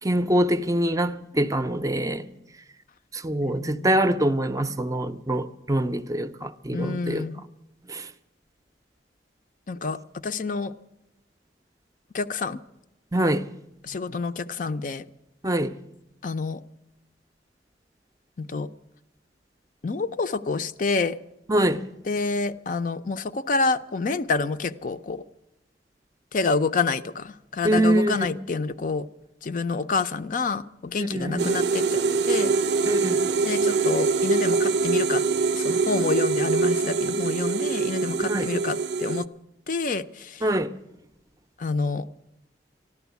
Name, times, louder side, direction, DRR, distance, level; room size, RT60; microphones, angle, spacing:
voice 1, 0.0-2.2 3.1-7.2 7.9-8.1 13.1-13.5 15.4-15.7 21.5-21.9 27.6-28.3 31.0-31.5 32.9-33.4 38.2-38.5 40.4-40.7, right 1 dB, 20° right, 0.5 m, -24 dB
voice 2, 3.4-3.9 6.7-7.4 9.7-10.7 12.1-12.6 13.8-15.0 16.2-16.6 18.4-18.7 19.8-21.2 22.1-25.2 26.3-29.1 29.4-32.6 33.4-35.2 35.5-39.3 39.7-40.4 41.6-42.1, left 4 dB, 50° left, 0.5 m, -28 dB
sound 1, 31.4-39.2, right 4 dB, 70° right, 0.5 m, -24 dB
13.5 x 12.0 x 8.2 m
head